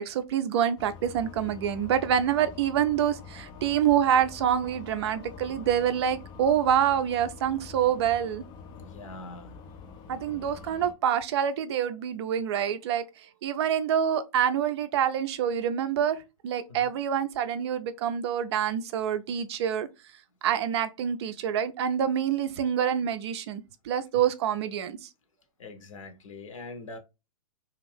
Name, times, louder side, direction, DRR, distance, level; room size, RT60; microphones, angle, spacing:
voice 1, 0.0-8.4 10.1-13.0 13.4-16.2 16.4-19.9 20.4-25.1, right 9 dB, 50° right, 0.4 m, -26 dB
sound 1, 0.8-10.9, left 5 dB, 25° left, 0.3 m, -46 dB
voice 2, 8.8-9.6 16.7-16.9 25.6-27.0, left 2 dB, 65° left, 0.8 m, -43 dB
2.5 x 2.4 x 3.2 m
figure-of-eight pair, 110°, 18 cm